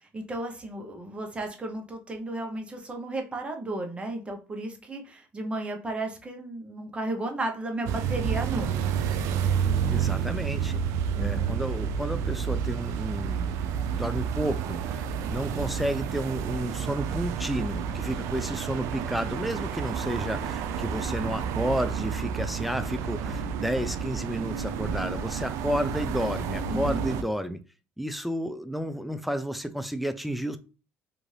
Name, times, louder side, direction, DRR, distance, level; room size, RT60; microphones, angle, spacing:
voice 1, 0.0-8.9 11.2-11.6 26.7-27.1, right 2 dB, 20° right, 0.7 m, -34 dB
sound 1, 7.9-27.2, right 7 dB, 75° right, 0.4 m, -30 dB
voice 2, 9.9-10.8 11.2-13.6 13.9-27.6 28.0-30.6, equal, ahead, 0.3 m, -31 dB
2.6 x 2.5 x 3.2 m
cardioid pair, 105°, 5 cm